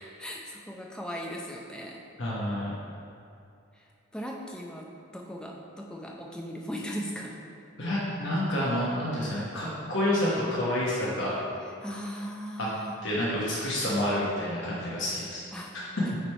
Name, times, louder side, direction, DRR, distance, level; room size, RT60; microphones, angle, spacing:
voice 1, 0.2-2.0 3.8-3.9 4.1-7.4 11.8-12.9 15.5-15.7 16.0-16.1, equal, 5° left, -1 dB, 0.5 m, -38 dB
voice 2, 2.2-2.7 7.8-11.3 12.6-12.7 13.0-15.4 15.7-15.8, left 1 dB, 60° left, -7 dB, 1.1 m, -29 dB
8.0 x 3.3 x 4.4 m, 2.5 s
head